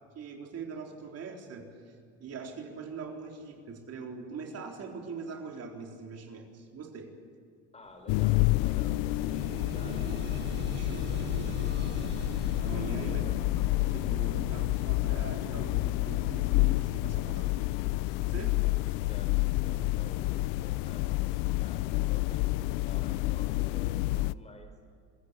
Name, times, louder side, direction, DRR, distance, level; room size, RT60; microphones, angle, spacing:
voice 1, 0.1-7.1 10.7-11.8 12.6-17.7 18.2-18.6, right 4 dB, 45° right, 2 dB, 4.1 m, -42 dB
voice 2, 7.7-9.3 9.6-10.2 12.7-13.4 18.6-18.8 19.1-21.2 21.6-24.7, left 2 dB, 20° left, 6 dB, 4.1 m, -51 dB
sound 1, 7.9-8.0 8.4-19.4 20.2-20.3 20.8-20.9, right 7 dB, 30° right, 0.9 m, -44 dB
sound 2, 8.1-24.3, left 19 dB, 80° left, 0.6 m, -29 dB
26.0 x 16.5 x 9.9 m, 2.3 s
cardioid pair, 115°, 33 cm